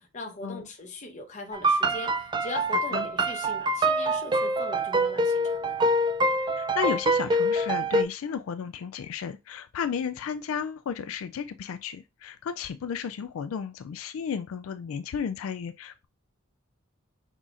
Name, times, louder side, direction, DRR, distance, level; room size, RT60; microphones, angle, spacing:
voice 1, 0.0-5.8 8.3-8.4, left 2 dB, 35° left, 1.0 m, -40 dB
sound 1, 1.5-8.0, right 1 dB, 20° right, 0.4 m, -25 dB
voice 2, 6.6-16.1, left 7 dB, 80° left, 0.3 m, -33 dB
5.6 x 3.6 x 2.5 m
head